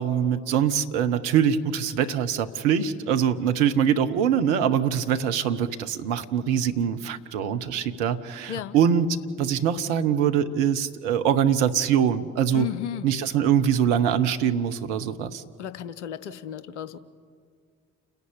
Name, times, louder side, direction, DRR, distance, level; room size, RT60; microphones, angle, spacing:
voice 1, 0.0-12.7 13.0-15.4, right 8 dB, 70° right, 8 dB, 1.0 m, -23 dB
voice 2, 12.5-13.1 15.6-17.0, left 11 dB, 80° left, 14 dB, 0.8 m, -33 dB
30.0 x 10.5 x 8.4 m, 2.1 s
figure-of-eight pair, 40°, 35 cm